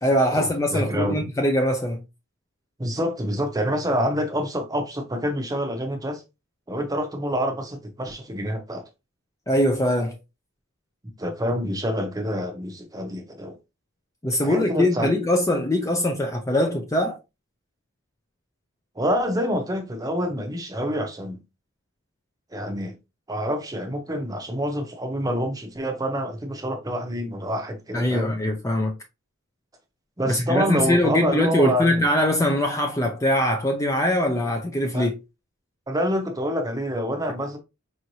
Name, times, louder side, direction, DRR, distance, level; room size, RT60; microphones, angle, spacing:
voice 1, 0.0-2.0 9.5-10.2 14.2-17.2 27.9-28.9 30.3-35.1, left 1 dB, 15° left, 0.4 m, -22 dB
voice 2, 0.7-1.2 2.8-6.2 6.7-8.8 11.2-13.5 14.4-15.1 19.0-21.4 22.5-22.9 23.3-28.3 30.2-32.0 34.9-35.1 35.9-37.6, equal, 15° right, 0.7 m, -27 dB
5.0 x 3.1 x 2.6 m
head